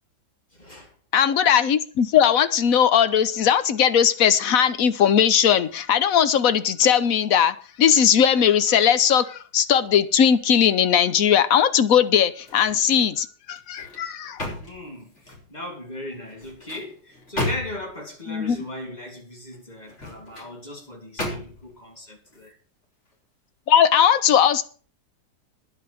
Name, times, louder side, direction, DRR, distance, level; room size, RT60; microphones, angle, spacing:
voice 1, 0.5-0.9 14.6-22.5, left 1 dB, 25° left, 3.3 m, -38 dB
voice 2, 1.1-14.4 18.3-18.6 23.7-24.6, left 8 dB, 60° left, 1.2 m, -19 dB
sound 1, 12.4-13.1 13.6-15.5 16.3-18.0 19.8-20.5 21.2-21.8 22.3-22.5, left 1 dB, 40° left, 4.3 m, -34 dB
10.5 x 8.6 x 6.9 m
omnidirectional pair, 1.8 m